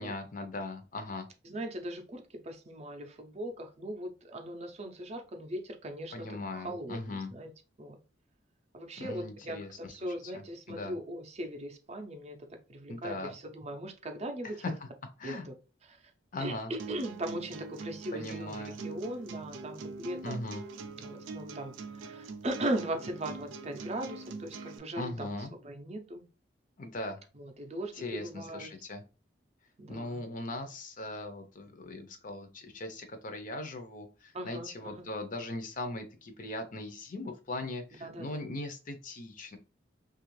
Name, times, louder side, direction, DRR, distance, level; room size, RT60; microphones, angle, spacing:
voice 1, 0.0-1.3 6.1-7.3 9.0-10.4 10.7-11.0 12.9-13.4 14.6-14.9 15.2-15.5 16.3-16.7 18.1-18.8 20.2-20.6 25.0-25.5 26.8-27.2 27.9-29.0 29.9-39.6, left 2 dB, 45° left, 7 dB, 0.6 m, -39 dB
voice 2, 1.4-7.5 7.8-8.0 8.7-12.4 12.7-14.5 15.2-15.5 15.8-16.1 16.4-20.4 21.0-25.3 25.6-26.3 27.3-28.7 29.8-30.2 34.3-35.1 38.0-38.5, right 1 dB, 35° right, 5 dB, 0.5 m, -39 dB
sound 1, 16.8-24.8, right 4 dB, 90° right, 0.4 m, -43 dB
2.9 x 2.4 x 3.1 m, 0.31 s
head